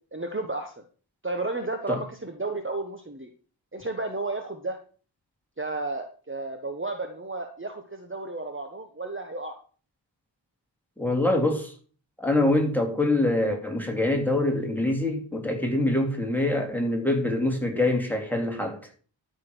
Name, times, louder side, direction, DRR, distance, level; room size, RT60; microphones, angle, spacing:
voice 1, 0.1-0.7 1.2-3.3 3.7-4.8 5.6-9.6, right 2 dB, 25° right, 1.3 m, -32 dB
voice 2, 11.0-11.7 12.2-18.8, left 1 dB, 5° left, 2.8 m, -25 dB
13.0 x 5.1 x 6.2 m
wide cardioid pair, 55°, 45 cm